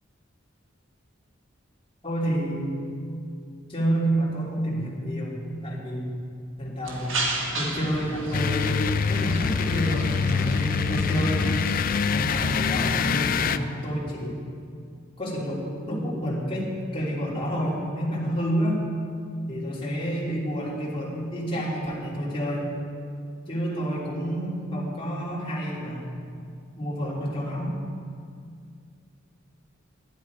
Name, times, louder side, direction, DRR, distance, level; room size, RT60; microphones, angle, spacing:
voice 1, 2.0-3.0 3.7-6.1 6.6-7.2 7.5-8.7 9.1-11.5 12.1-14.4 15.2-18.8 19.5-22.7 23.5-26.2 26.8-27.7, equal, 30° left, -7 dB, 3.1 m, -29 dB
sound 1, 6.8-12.1, right 2 dB, 75° right, 1.6 m, -34 dB
sound 2, 8.3-13.6, left 6 dB, 45° left, 0.4 m, -25 dB
12.0 x 10.5 x 4.8 m, 2.2 s
head